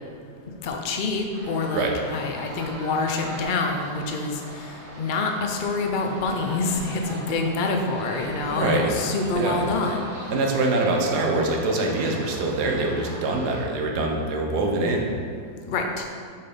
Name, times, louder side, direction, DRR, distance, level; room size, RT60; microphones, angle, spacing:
voice 1, 0.6-10.1 15.7-16.1, left 3 dB, 75° left, 2 dB, 0.4 m, -26 dB
sound 1, 1.3-13.6, right 1 dB, 55° right, 1.5 m, -40 dB
voice 2, 8.5-8.9 9.4-9.6 10.3-15.1, right 2 dB, 80° right, 1 dB, 1.5 m, -24 dB
7.7 x 4.2 x 5.1 m, 2.1 s
omnidirectional pair, 1.7 m